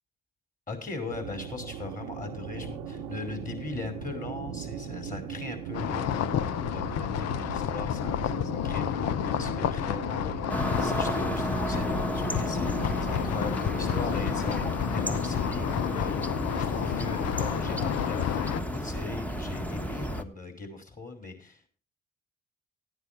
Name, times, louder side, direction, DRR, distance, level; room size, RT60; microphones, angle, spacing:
voice 1, 0.7-6.4 6.7-21.7, left 3 dB, 30° left, 4 dB, 5.4 m, -39 dB
sound 1, 1.1-20.2, right 7 dB, 85° right, 1.0 m, -40 dB
sound 2, 5.7-18.6, left 10 dB, 65° left, 0.7 m, -30 dB
sound 3, 10.5-20.2, equal, 5° left, 1.4 m, -33 dB
14.5 x 9.5 x 4.5 m, 0.36 s
hypercardioid pair, 45°, 29 cm